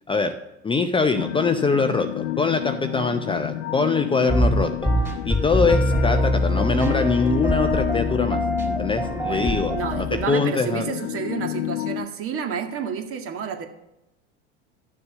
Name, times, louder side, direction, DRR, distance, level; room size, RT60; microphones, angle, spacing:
voice 1, 0.6-4.9 5.2-10.8, left 4 dB, 15° left, 7 dB, 0.7 m, -23 dB
sound 1, 1.2-12.1, left 15 dB, 65° left, 0.6 m, -30 dB
sound 2, 4.3-10.3, equal, 5° right, 3.2 m, -24 dB
voice 2, 9.1-13.7, right 6 dB, 40° right, 5 dB, 1.9 m, -30 dB
12.0 x 6.8 x 6.6 m, 0.90 s
hypercardioid pair, 80°, 35 cm